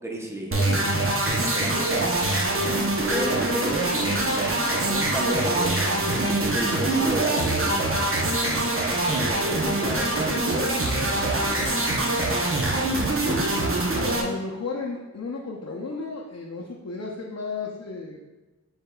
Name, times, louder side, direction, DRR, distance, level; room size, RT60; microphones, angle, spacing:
voice 1, 0.0-0.9 1.3-1.9 3.1-3.8 4.2-5.8 6.5-7.9 8.9-10.7 11.2-11.9, equal, 10° right, 0 dB, 0.8 m, -34 dB
sound 1, 0.5-14.2, right 2 dB, 45° right, 0.7 m, -24 dB
voice 2, 0.6-1.0 1.7-2.2 3.0-3.4 4.7-4.9 13.3-13.8 14.2-18.2, left 3 dB, 60° left, -3 dB, 0.6 m, -34 dB
6.5 x 3.5 x 2.3 m, 1.1 s
wide cardioid pair, 45°, 29 cm